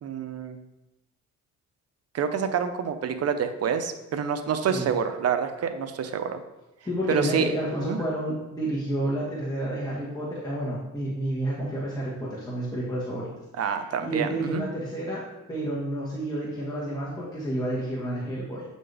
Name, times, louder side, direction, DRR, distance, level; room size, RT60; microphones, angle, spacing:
voice 1, 0.0-0.6 2.1-6.4 7.1-7.5 7.9-8.0 13.6-14.6, right 7 dB, 55° right, 8 dB, 0.7 m, -27 dB
voice 2, 6.8-13.3 13.7-18.6, right 1 dB, 10° left, -7 dB, 1.7 m, -30 dB
8.4 x 4.2 x 3.4 m, 0.97 s
cardioid pair, 90°, 30 cm